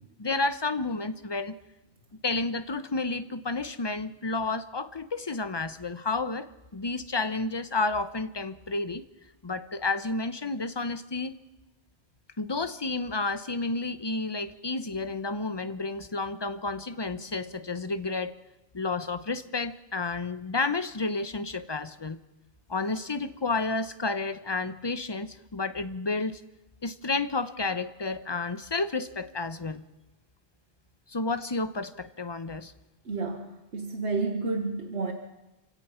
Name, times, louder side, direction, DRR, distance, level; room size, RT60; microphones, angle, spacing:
voice 1, 0.2-1.5 2.2-9.0 9.4-11.4 12.4-18.3 18.7-22.2 22.7-26.4 26.8-29.8 31.1-32.7, left 3 dB, 25° left, 11 dB, 0.8 m, -31 dB
voice 2, 33.0-35.1, right 3 dB, 75° right, 5 dB, 1.6 m, -31 dB
27.5 x 16.5 x 5.7 m, 1.0 s
omnidirectional pair, 1.1 m